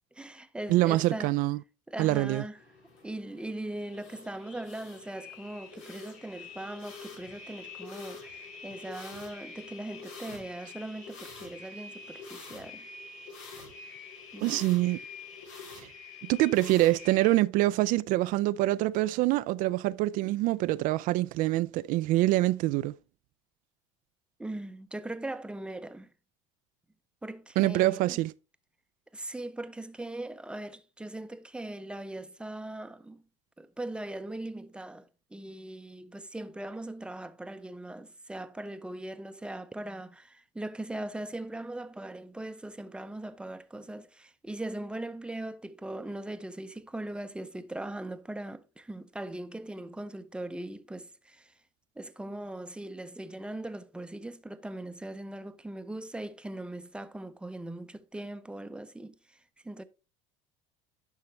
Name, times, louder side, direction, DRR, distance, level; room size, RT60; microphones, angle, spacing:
voice 1, 0.1-1.3 1.9-2.6 3.0-12.9 14.3-14.7 24.4-26.1 27.2-28.2 29.1-33.2 33.6-51.5 52.0-59.4 59.6-59.8, right 1 dB, 5° right, 0.7 m, -40 dB
voice 2, 0.7-1.6 2.0-2.4 14.4-15.0 16.3-23.0 27.6-28.3, right 17 dB, 60° right, 0.4 m, -25 dB
sound 1, 2.5-17.4, left 4 dB, 85° left, 2.6 m, -46 dB
10.5 x 5.6 x 3.1 m
supercardioid pair, 95°, 16 cm